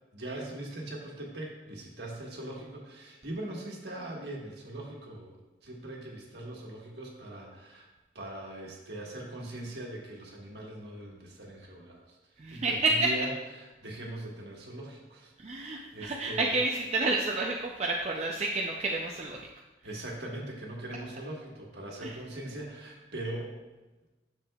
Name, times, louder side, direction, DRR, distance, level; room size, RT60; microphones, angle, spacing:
voice 1, 0.1-7.9 8.1-12.2 12.5-13.3 13.6-16.6 19.8-23.5, right 1 dB, 65° right, -2 dB, 1.5 m, -41 dB
voice 2, 12.4-13.0 15.4-19.5 22.0-22.1, right 3 dB, 35° right, -1 dB, 0.5 m, -30 dB
9.7 x 6.6 x 2.3 m, 1.1 s
head